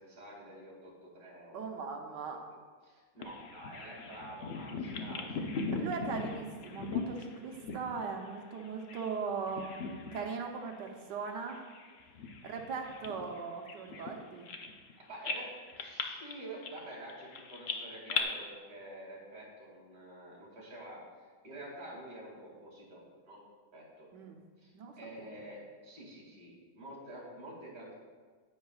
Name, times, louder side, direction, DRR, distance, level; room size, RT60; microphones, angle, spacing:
voice 1, 0.0-2.2 2.8-5.6 15.0-15.5 15.8-23.4 23.7-24.1 24.6-27.9, right 1 dB, 55° right, -4 dB, 3.0 m, -48 dB
voice 2, 1.5-2.4 5.7-9.8 10.1-11.6 12.4-14.5 24.1-24.4 24.7-25.3, right 5 dB, 75° right, 3 dB, 1.5 m, -39 dB
Bird vocalization bird call bird song, 3.2-9.2 9.5-10.4 10.7-10.9 11.5-14.9 15.2-18.2, left 4 dB, 65° left, 0.6 m, -39 dB
9.8 x 9.5 x 2.4 m, 1.5 s
omnidirectional pair, 1.9 m